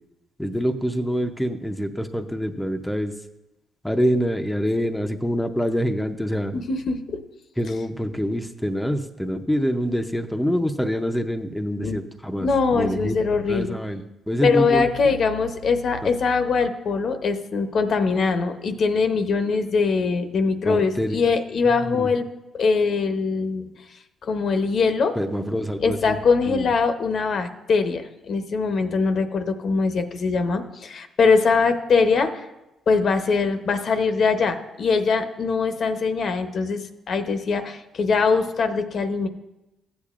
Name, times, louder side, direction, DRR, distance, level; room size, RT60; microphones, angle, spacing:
voice 1, 0.4-3.1 3.8-6.5 7.6-13.2 13.5-15.1 16.0-16.1 20.6-21.2 21.6-22.1 25.1-26.2 26.5-26.7, equal, 5° left, 4 dB, 0.6 m, -26 dB
voice 2, 6.5-7.2 11.8-12.0 12.4-13.7 14.4-22.2 22.5-23.7 24.2-25.1 25.8-32.3 32.9-39.3, left 4 dB, 55° left, 8 dB, 0.8 m, -22 dB
14.5 x 8.4 x 2.5 m, 0.96 s
cardioid pair, 90°, 0 cm